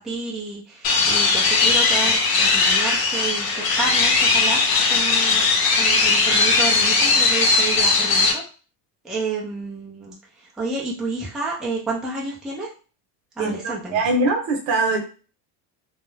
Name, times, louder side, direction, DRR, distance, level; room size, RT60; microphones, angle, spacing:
voice 1, 0.0-5.4 5.8-8.4 9.0-12.7 13.4-14.0, right 3 dB, ahead, -4 dB, 0.4 m, -30 dB
sound 1, 0.8-8.3, left 4 dB, 50° left, 0.8 m, -18 dB
voice 2, 13.4-15.0, right 2 dB, 65° right, 3 dB, 0.9 m, -22 dB
2.4 x 2.1 x 3.1 m, 0.36 s
cardioid pair, 135°, 48 cm